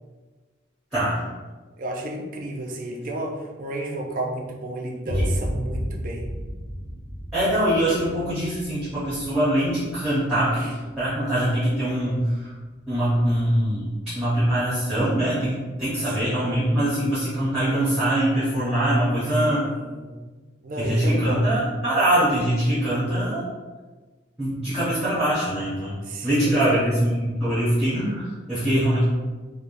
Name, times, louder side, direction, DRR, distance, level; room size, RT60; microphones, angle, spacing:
voice 1, 0.9-1.2 7.3-10.7 11.0-12.5 12.9-19.7 20.8-23.4 24.4-29.0, right 1 dB, 5° right, -12 dB, 0.8 m, -23 dB
voice 2, 1.8-6.3 10.6-10.7 16.0-16.7 19.5-20.2 20.6-21.4 26.1-26.9, right 1 dB, 45° right, 1 dB, 0.4 m, -32 dB
Boom, 5.1-12.9, equal, 85° left, 0.6 m, -33 dB
3.2 x 2.2 x 2.5 m, 1.3 s
head